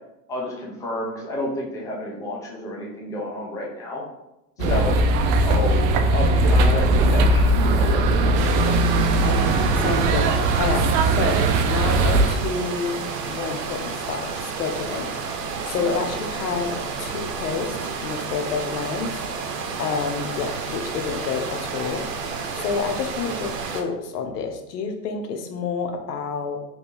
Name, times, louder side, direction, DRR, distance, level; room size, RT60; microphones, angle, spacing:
voice 1, 0.3-4.0 4.7-4.9 5.4-5.8 6.1-8.3 15.8-16.0, left 1 dB, 10° left, -3 dB, 0.5 m, -30 dB
sound 1, 4.6-12.3, right 2 dB, 50° right, 0.5 m, -19 dB
sound 2, 8.3-23.8, right 5 dB, 90° right, 0.7 m, -31 dB
voice 2, 9.2-17.7 18.0-19.1 19.8-22.0 22.5-26.6, left 5 dB, 80° left, 5 dB, 0.7 m, -29 dB
3.1 x 2.5 x 3.5 m, 0.90 s
hypercardioid pair, 120°, 47 cm